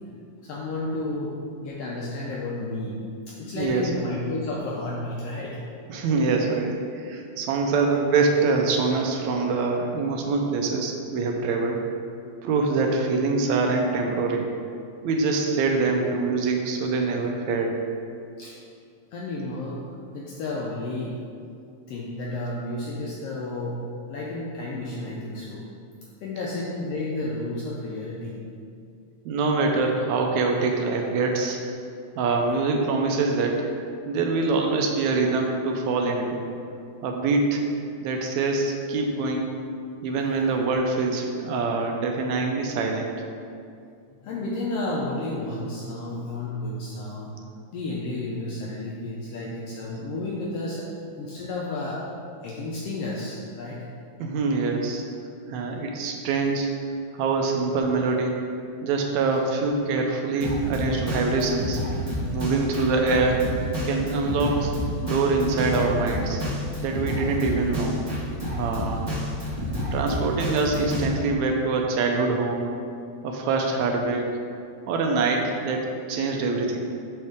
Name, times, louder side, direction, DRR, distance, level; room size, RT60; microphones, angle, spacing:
voice 1, 0.4-3.0 3.3-5.6 18.4-18.5 19.1-19.8 20.1-21.2 21.9-23.8 24.1-25.6 26.2-28.4 44.1-47.3 47.7-50.9 51.2-52.0 52.4-53.9, left 2 dB, 80° left, -4 dB, 1.4 m, -32 dB
voice 2, 3.5-3.9 5.9-11.9 12.4-14.5 15.0-17.8 26.4-26.5 29.3-31.6 32.2-33.7 34.1-36.5 37.0-37.6 38.0-39.5 40.0-43.1 54.2-55.0 55.5-56.7 57.1-58.5 58.8-61.8 62.3-63.4 63.8-64.7 65.0-66.4 66.8-68.0 68.6-69.1 69.9-72.8 73.2-74.4 74.9-76.9, right 3 dB, 80° right, 2 dB, 1.8 m, -24 dB
Drum kit, 60.4-71.1, equal, 60° right, 0.4 m, -29 dB
6.4 x 5.5 x 3.5 m, 2.4 s
omnidirectional pair, 3.4 m